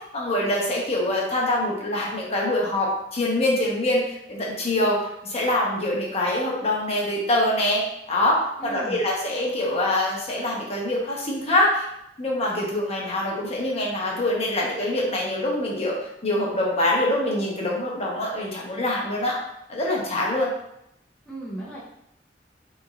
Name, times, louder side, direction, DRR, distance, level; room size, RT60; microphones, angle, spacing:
voice 1, 0.1-11.9 12.2-19.4 19.7-20.5, left 1 dB, 35° left, -3 dB, 0.9 m, -24 dB
voice 2, 8.6-9.0 21.3-21.8, right 2 dB, 5° left, -8 dB, 0.7 m, -36 dB
4.9 x 3.1 x 2.4 m, 0.77 s
head